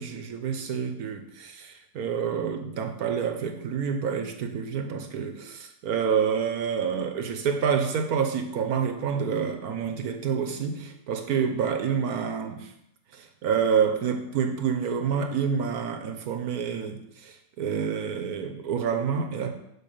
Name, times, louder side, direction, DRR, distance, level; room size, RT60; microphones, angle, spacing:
voice 1, 0.0-12.7 13.1-19.6, right 7 dB, 65° right, 6 dB, 1.2 m, -28 dB
6.9 x 5.4 x 6.6 m, 0.81 s
omnidirectional pair, 1.9 m